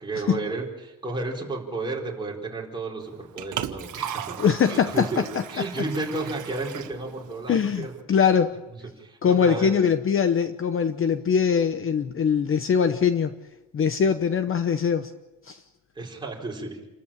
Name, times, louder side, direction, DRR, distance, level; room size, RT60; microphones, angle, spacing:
voice 1, 0.0-4.4 4.7-5.2 5.5-8.2 9.0-9.8 14.0-14.1 15.9-16.8, right 3 dB, 15° right, -2 dB, 4.6 m, -32 dB
Liquid, 3.0-8.0, right 9 dB, 65° right, 1.6 m, -37 dB
voice 2, 4.4-5.1 7.5-8.5 9.2-13.3 13.7-15.1 15.4-15.6, left 7 dB, 40° left, 9 dB, 0.9 m, -22 dB
29.0 x 14.0 x 8.9 m, 1.0 s
cardioid pair, 170°, 34 cm